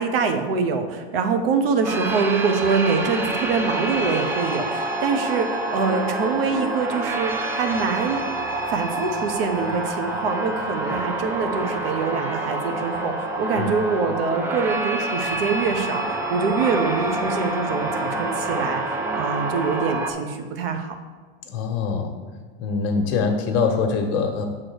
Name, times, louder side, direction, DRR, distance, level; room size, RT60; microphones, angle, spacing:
voice 1, 0.0-8.3 8.7-18.8 19.1-20.9, right 5 dB, 65° right, 7 dB, 1.0 m, -24 dB
sound 1, 1.8-20.1, right 2 dB, 10° right, 0.4 m, -27 dB
voice 2, 21.5-22.1 22.6-24.4, left 5 dB, 45° left, 4 dB, 1.2 m, -23 dB
6.7 x 3.8 x 6.3 m, 1.5 s
supercardioid pair, 135°, 32 cm